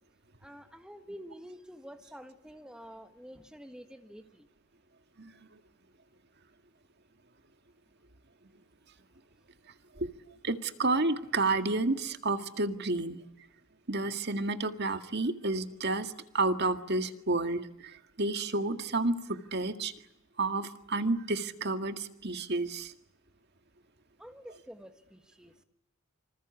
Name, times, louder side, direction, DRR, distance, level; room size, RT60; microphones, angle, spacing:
voice 1, 0.4-4.5 24.2-25.5, equal, 5° right, 7 dB, 1.5 m, -48 dB
voice 2, 10.4-13.2 13.9-17.6 18.2-19.9 20.4-22.9, right 2 dB, 50° right, 8 dB, 2.0 m, -30 dB
26.5 x 26.0 x 8.3 m, 0.78 s
head